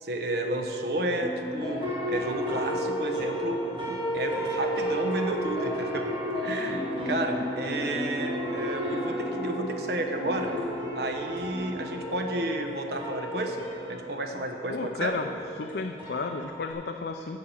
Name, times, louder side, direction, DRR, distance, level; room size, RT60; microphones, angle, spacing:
voice 1, 0.0-3.6 3.9-6.1 6.4-10.5 10.9-13.6 13.9-15.1, right 1 dB, 65° right, 4 dB, 1.0 m, -31 dB
sound 1, 1.1-16.7, equal, 30° right, 1.8 m, -33 dB
voice 2, 14.7-17.4, left 3 dB, 65° left, 5 dB, 0.5 m, -33 dB
9.4 x 7.5 x 7.1 m, 2.9 s
head